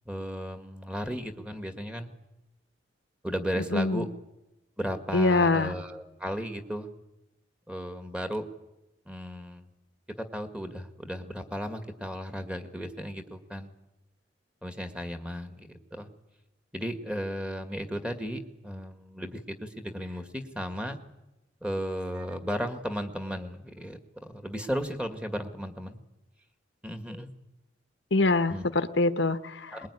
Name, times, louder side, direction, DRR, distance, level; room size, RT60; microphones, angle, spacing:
voice 1, 0.1-2.1 3.2-4.1 4.8-6.9 7.7-8.4 9.1-9.7 10.2-13.7 14.6-16.1 16.7-21.0 21.6-26.0 26.8-27.3 28.5-28.7 29.7-29.9, equal, 5° right, 7 dB, 1.9 m, -35 dB
voice 2, 3.7-4.1 5.1-5.7 28.1-29.8, left 3 dB, 70° left, 11 dB, 1.1 m, -24 dB
22.5 x 21.0 x 9.9 m, 0.95 s
head